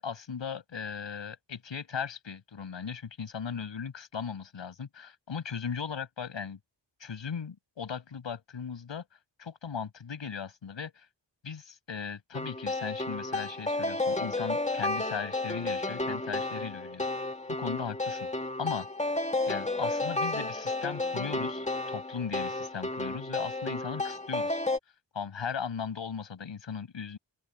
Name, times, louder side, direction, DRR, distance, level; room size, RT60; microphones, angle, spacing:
voice 1, 0.0-6.6 7.0-9.0 9.4-11.1 11.4-17.0 17.5-18.3 18.6-18.9 19.5-24.6 25.1-27.2, left 6 dB, 80° left, 7.4 m, -38 dB
Banjo Melody, 12.3-24.8, left 2 dB, 15° left, 2.2 m, -32 dB
open air
wide cardioid pair, 95°, 44 cm